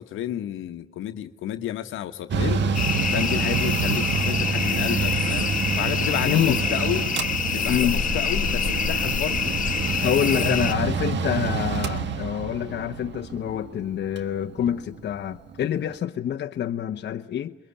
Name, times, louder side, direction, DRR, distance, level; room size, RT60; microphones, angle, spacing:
voice 1, 0.0-2.6 3.1-5.5 5.8-7.0 7.5-9.7 10.0-10.6, left 12 dB, 85° left, 1.2 m, -31 dB
Mechanical fan, 2.3-15.7, right 6 dB, 65° right, 1.6 m, -28 dB
sound 1, 2.7-10.7, left 7 dB, 40° left, 1.1 m, -26 dB
voice 2, 6.2-6.6 7.7-8.0 10.0-17.6, left 10 dB, 60° left, 1.0 m, -26 dB
23.5 x 22.5 x 10.0 m
cardioid pair, 90°, 20 cm